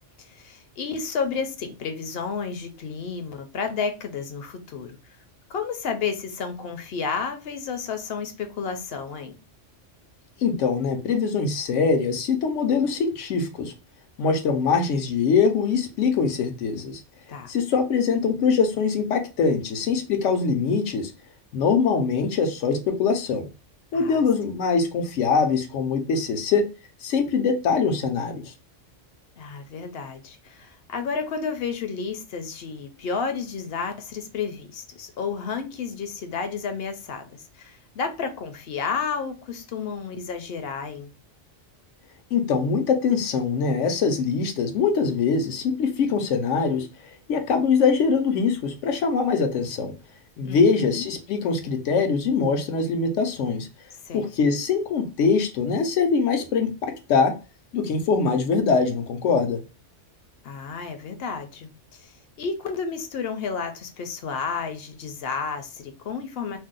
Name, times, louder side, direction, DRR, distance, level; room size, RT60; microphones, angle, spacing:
voice 1, 0.2-5.0 5.5-9.3 17.3-17.5 23.9-24.2 29.4-41.1 50.4-51.1 54.1-54.3 60.4-66.6, left 5 dB, 65° left, 0.7 m, -31 dB
voice 2, 10.4-13.7 14.2-17.0 17.5-21.1 21.5-23.5 23.9-26.7 27.0-28.5 42.3-49.9 50.4-53.7 54.1-56.7 57.1-57.3 57.7-59.6, left 5 dB, 85° left, 1.0 m, -23 dB
2.6 x 2.0 x 3.7 m
omnidirectional pair, 1.2 m